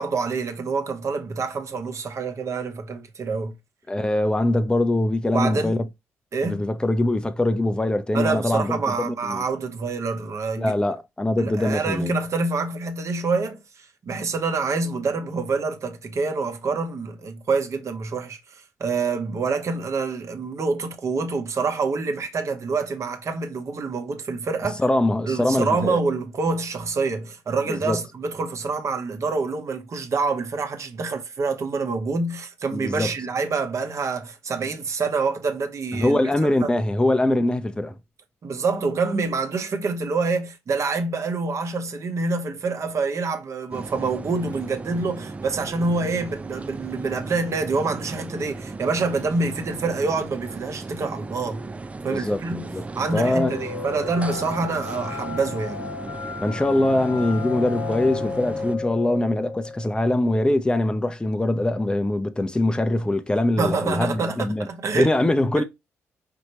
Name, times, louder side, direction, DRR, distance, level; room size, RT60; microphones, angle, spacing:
voice 1, 0.0-3.5 5.3-5.8 6.3-6.6 8.1-10.7 11.4-24.8 25.3-36.2 36.6-36.7 38.4-51.6 52.0-52.6 52.9-55.8 63.6-65.1, right 4 dB, 45° right, 1.1 m, -26 dB
voice 2, 3.9-5.8 6.4-9.4 10.6-12.1 24.8-26.0 27.7-28.0 32.7-33.1 36.0-38.0 52.1-52.8 53.1-53.6 56.4-64.7 64.9-65.6, left 1 dB, 10° left, 0.7 m, -23 dB
sound 1, 43.7-58.8, right 3 dB, 20° right, 0.3 m, -36 dB
sound 2, 53.0-60.4, left 4 dB, 55° left, 0.7 m, -34 dB
5.2 x 2.9 x 3.0 m
hypercardioid pair, 45°, 7 cm